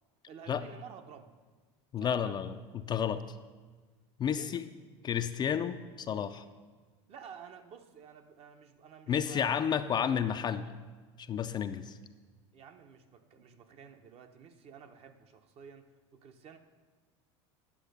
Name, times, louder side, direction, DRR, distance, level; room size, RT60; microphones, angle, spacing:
voice 1, 0.3-1.3 2.0-2.4 4.3-4.6 7.1-10.3 12.5-16.6, right 7 dB, 45° right, 7 dB, 0.9 m, -51 dB
voice 2, 1.9-3.2 4.2-4.6 5.0-6.4 9.1-10.7 11.2-12.0, left 8 dB, 30° left, 9 dB, 0.4 m, -31 dB
10.0 x 6.2 x 6.7 m, 1.4 s
supercardioid pair, 110°, 15 cm